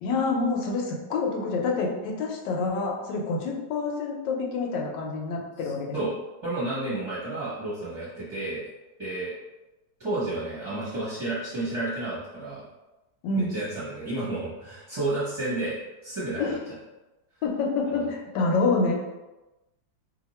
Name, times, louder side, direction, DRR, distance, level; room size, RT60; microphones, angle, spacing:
voice 1, 0.0-6.1 13.2-13.5 16.4-16.6 17.4-18.9, left 3 dB, 75° left, 0 dB, 1.3 m, -27 dB
voice 2, 5.6-6.1 6.4-8.7 9.0-9.3 10.0-12.6 13.3-16.6 17.9-18.1, right 2 dB, 20° right, -11 dB, 0.9 m, -31 dB
2.8 x 2.7 x 4.1 m, 1.1 s
omnidirectional pair, 2.0 m